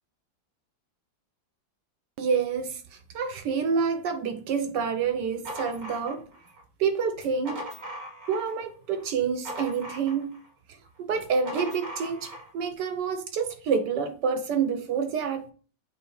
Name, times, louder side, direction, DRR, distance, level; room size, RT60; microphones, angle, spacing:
voice 1, 2.2-6.2 6.8-7.6 8.3-10.3 10.7-15.5, right 6 dB, 70° right, 1.3 m, -28 dB
sound 1, 5.1-6.6 7.1-8.6 8.9-10.5 11.1-12.5, equal, 40° right, 2.5 m, -39 dB
8.1 x 2.8 x 4.7 m
omnidirectional pair, 2.1 m